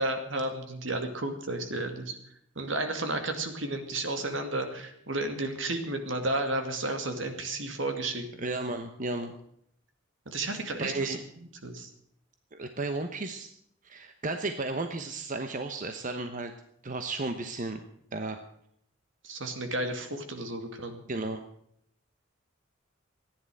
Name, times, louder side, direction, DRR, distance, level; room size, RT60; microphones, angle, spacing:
voice 1, 0.0-2.2 2.6-8.2 10.3-11.9 19.2-21.0, right 2 dB, 75° right, 6 dB, 2.4 m, -32 dB
voice 2, 8.4-9.3 10.8-11.2 12.5-13.5 13.8-16.5 16.8-17.8 18.1-18.4 21.1-21.4, right 2 dB, 45° right, 7 dB, 1.0 m, -33 dB
15.0 x 10.0 x 7.8 m, 0.70 s
head